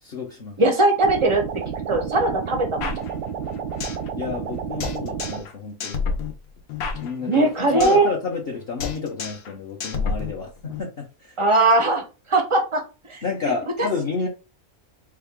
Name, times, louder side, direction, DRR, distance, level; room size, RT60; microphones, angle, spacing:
voice 1, 0.0-0.5 4.2-6.0 7.0-11.3 13.2-14.3, left 5 dB, 50° left, 0.8 m, -30 dB
voice 2, 0.6-1.4 1.9-3.0 3.4-3.5 7.3-8.1 11.4-12.8 13.1-13.2, right 2 dB, 45° right, 0.3 m, -20 dB
sound 1, 1.0-5.5, right 7 dB, 85° right, 1.0 m, -31 dB
sound 2, 2.8-4.1 4.3-4.4 4.8-5.5 5.8-8.1 8.3-8.5 8.8-9.5 9.8-10.8, left 5 dB, 85° left, 1.1 m, -30 dB
3.6 x 2.3 x 3.5 m
omnidirectional pair, 1.5 m